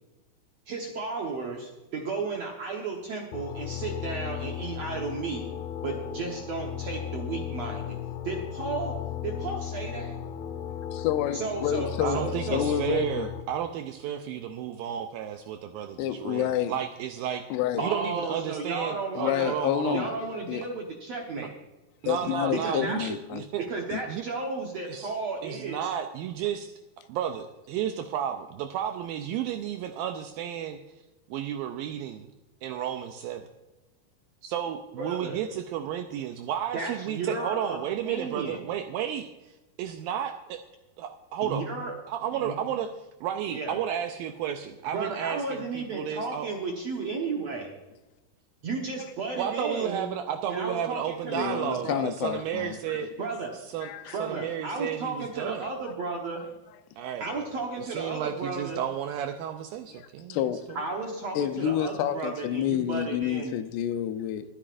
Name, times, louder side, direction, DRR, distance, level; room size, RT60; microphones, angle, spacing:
voice 1, 0.7-5.5 5.8-8.0 8.2-10.2 11.3-12.7 17.8-19.5 19.9-21.5 22.5-23.0 23.6-25.9 35.0-35.4 36.7-37.8 38.0-38.6 41.4-41.9 42.3-42.6 43.5-43.8 44.9-47.7 48.6-50.1 50.5-52.0 53.2-53.5 54.1-56.4 57.2-58.8 60.7-63.6, right 3 dB, 65° right, 0 dB, 1.6 m, -33 dB
sound 1, 3.3-13.4, left 10 dB, 70° left, 2.6 m, -36 dB
voice 2, 10.9-13.3 16.0-16.7 17.5-17.8 19.1-20.1 20.5-20.6 22.1-23.5 23.9-24.0 51.3-53.3 53.8-54.2 60.0-60.7 61.4-64.4, left 10 dB, 90° left, 9 dB, 2.9 m, -29 dB
voice 3, 12.0-17.4 17.8-20.0 21.4-21.5 22.0-23.6 24.1-24.2 24.9-25.1 25.4-26.7 27.1-30.8 31.3-32.3 32.6-33.5 34.4-39.3 39.8-40.6 41.0-41.7 42.1-42.9 43.2-46.5 49.4-53.1 53.7-55.7 57.0-57.5 57.8-60.4 60.7-60.8, right 9 dB, 85° right, 6 dB, 2.1 m, -32 dB
21.5 x 9.8 x 2.5 m, 1.1 s
omnidirectional pair, 4.7 m